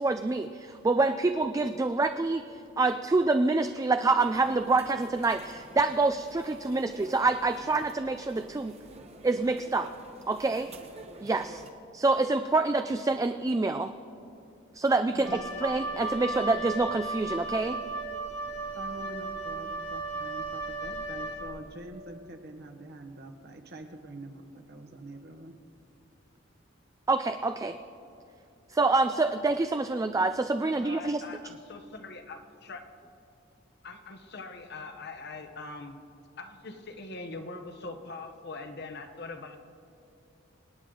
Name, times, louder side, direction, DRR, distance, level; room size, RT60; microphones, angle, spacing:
voice 1, 0.0-8.7 9.2-9.9 10.3-10.7 11.2-11.6 11.9-13.9 14.7-17.8 27.1-27.8 28.7-31.2, right 3 dB, 15° right, 8 dB, 0.3 m, -26 dB
sound 1, 4.2-11.7, right 2 dB, 35° right, 1.0 m, -49 dB
voice 2, 15.1-15.7 18.4-25.5, right 1 dB, 60° right, 4 dB, 1.3 m, -45 dB
Wind instrument woodwind instrument, 15.2-21.8, right 3 dB, 80° left, 2.5 m, -35 dB
voice 3, 30.6-32.8 33.8-36.0 36.4-39.6, left 3 dB, 60° left, 7 dB, 1.1 m, -42 dB
25.5 x 9.1 x 3.9 m, 2.7 s
head